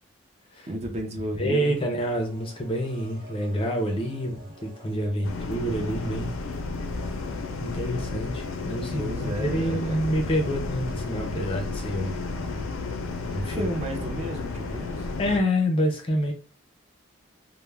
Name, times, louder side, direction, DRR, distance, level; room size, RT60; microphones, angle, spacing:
voice 1, 0.7-1.8 8.9-10.0 13.4-15.1, right 1 dB, 30° right, 1 dB, 0.5 m, -32 dB
voice 2, 1.4-4.4 4.6-6.3 7.6-12.2 13.3-13.7 15.2-16.3, equal, 25° left, 2 dB, 0.4 m, -27 dB
sound 1, 2.0-5.5, right 1 dB, 75° right, 0.9 m, -49 dB
sound 2, 5.2-15.4, left 3 dB, 80° left, 0.4 m, -32 dB
2.2 x 2.1 x 3.2 m, 0.37 s
head